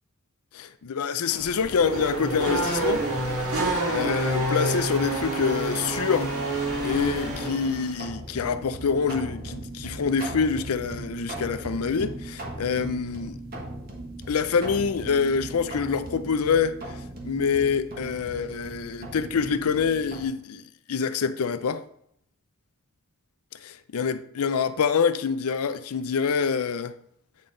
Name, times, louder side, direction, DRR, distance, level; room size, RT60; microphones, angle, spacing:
voice 1, 0.5-3.1 3.5-6.3 6.8-13.4 14.3-20.6 20.9-21.8 23.6-26.9, left 6 dB, 80° left, 0.5 m, -26 dB
Race car auto racing / Accelerating revving vroom, 1.3-8.0, right 1 dB, 75° right, 1.9 m, -28 dB
sound 1, 1.7-20.2, right 2 dB, 45° right, 1.2 m, -40 dB
8.7 x 3.9 x 3.8 m
head